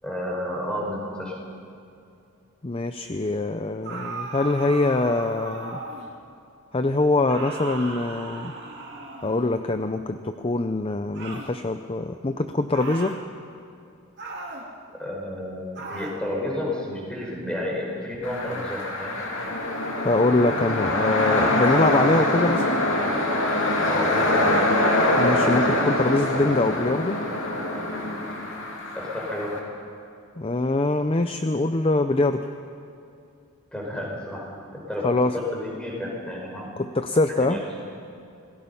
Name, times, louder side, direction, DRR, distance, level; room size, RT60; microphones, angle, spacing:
voice 1, 0.0-1.4 15.0-19.2 23.8-24.7 28.9-29.7 33.7-36.7 37.4-37.7, left 1 dB, 5° left, -3 dB, 4.9 m, -31 dB
voice 2, 2.6-5.8 6.7-8.5 9.2-13.2 20.0-22.8 25.2-27.2 30.4-32.4 35.0-35.3 36.8-37.6, left 2 dB, 25° left, 8 dB, 0.5 m, -23 dB
sound 1, 3.8-6.2 7.3-9.5 11.1-11.5 12.7-13.2 14.2-14.7 15.8-16.2, right 2 dB, 50° right, 2.7 m, -36 dB
sound 2, 18.2-29.6, left 1 dB, 60° left, 3.0 m, -24 dB
27.5 x 19.0 x 5.6 m, 2.5 s
head